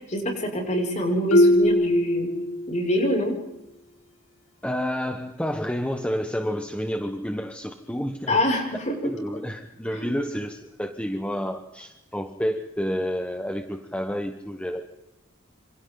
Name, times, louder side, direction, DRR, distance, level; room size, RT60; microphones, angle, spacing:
voice 1, 0.0-2.3 2.7-3.3 8.3-8.9 9.9-10.1, equal, 35° left, 0 dB, 6.6 m, -25 dB
Marimba xylophone, 1.3-3.1, left 1 dB, 90° left, 1.8 m, -21 dB
voice 2, 4.6-8.4 9.0-15.0, equal, 5° left, 5 dB, 1.2 m, -29 dB
27.5 x 27.0 x 4.0 m, 0.92 s
head